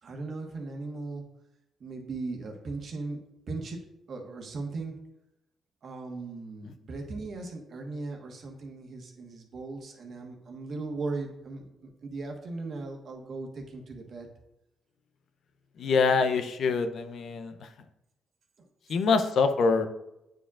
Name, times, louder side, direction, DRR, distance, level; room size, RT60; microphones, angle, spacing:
voice 1, 0.0-1.2 1.8-3.2 3.5-3.8 4.1-5.0 5.8-14.3, right 3 dB, 55° right, 2 dB, 1.3 m, -38 dB
voice 2, 15.8-17.7 18.9-19.9, left 4 dB, 65° left, 8 dB, 0.6 m, -25 dB
8.9 x 4.7 x 2.4 m, 0.90 s
cardioid pair, 90°, 0 cm